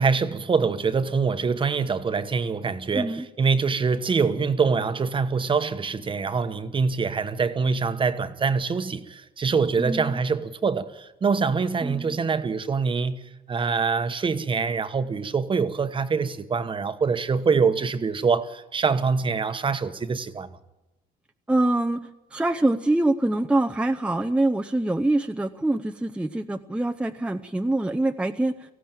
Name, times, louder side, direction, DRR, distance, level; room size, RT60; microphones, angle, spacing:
voice 1, 0.0-20.5, right 5 dB, 30° right, 1.1 m, -24 dB
voice 2, 2.9-3.2 9.8-10.2 11.8-12.2 21.5-28.7, right 2 dB, 5° right, 0.7 m, -25 dB
19.0 x 15.5 x 9.0 m
cardioid pair, 110°, 17 cm